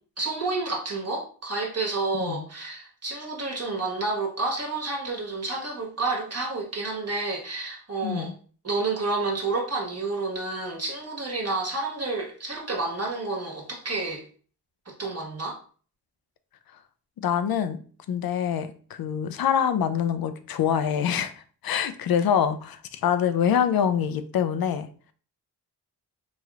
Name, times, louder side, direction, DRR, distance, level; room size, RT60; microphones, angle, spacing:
voice 1, 0.2-8.3 8.6-14.2 14.8-15.6, right 3 dB, 35° right, 0 dB, 1.4 m, -30 dB
voice 2, 2.1-2.4 8.0-8.3 17.2-17.8 18.1-18.7 19.0-21.3 21.6-24.9, left 8 dB, 60° left, 11 dB, 0.5 m, -25 dB
3.0 x 3.0 x 2.4 m, 0.42 s
cardioid pair, 45°, 41 cm